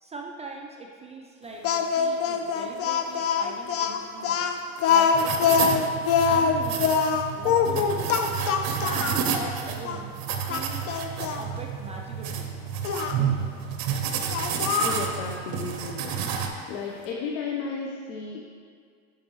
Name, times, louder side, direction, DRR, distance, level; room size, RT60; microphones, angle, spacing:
voice 1, 0.0-4.5 4.9-5.9 6.3-7.0 7.3-8.2 8.7-10.1 10.5-10.9 11.4-12.6, right 3 dB, 15° right, 1 dB, 0.3 m, -40 dB
Speech, 1.6-9.2 9.8-10.0 10.5-11.4 12.8-13.2 14.3-15.1, left 6 dB, 35° left, 0.6 m, -24 dB
sound 1, 5.1-16.5, right 7 dB, 55° right, 0.9 m, -30 dB
voice 2, 14.8-16.1 16.7-18.4, left 5 dB, 65° left, 0 dB, 0.8 m, -33 dB
10.5 x 5.3 x 3.0 m, 2.1 s
hypercardioid pair, 100°, 43 cm